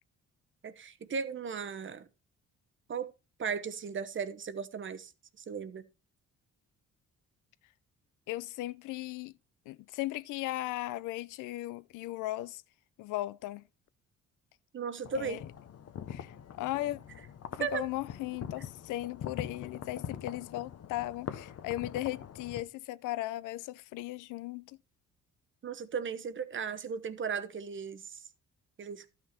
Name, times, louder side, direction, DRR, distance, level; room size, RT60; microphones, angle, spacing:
voice 1, 0.6-2.1 2.9-3.1 3.4-5.1 5.4-5.8 14.7-15.4 17.6-17.8 25.6-28.2 28.8-29.0, right 6 dB, 40° right, 1.0 m, -36 dB
voice 2, 8.3-9.3 9.7-12.6 13.0-13.6 15.2-15.4 16.1-17.0 17.5-24.8, left 16 dB, 90° left, 0.5 m, -37 dB
sound 1, 15.0-22.6, left 8 dB, 55° left, 1.0 m, -43 dB
12.0 x 6.0 x 4.2 m
cardioid pair, 90°, 30 cm